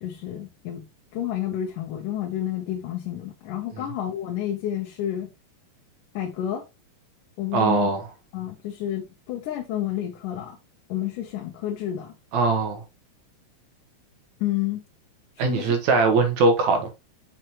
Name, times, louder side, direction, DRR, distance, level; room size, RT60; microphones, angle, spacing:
voice 1, 0.0-0.9 1.1-5.3 6.1-6.6 7.4-7.9 8.3-10.6 10.9-12.1 14.4-14.8 15.4-15.7, left 11 dB, 90° left, 2.5 m, -30 dB
voice 2, 7.5-8.0 12.3-12.8 15.4-16.9, right 3 dB, 70° right, 2.5 m, -21 dB
6.3 x 6.0 x 3.0 m
omnidirectional pair, 3.6 m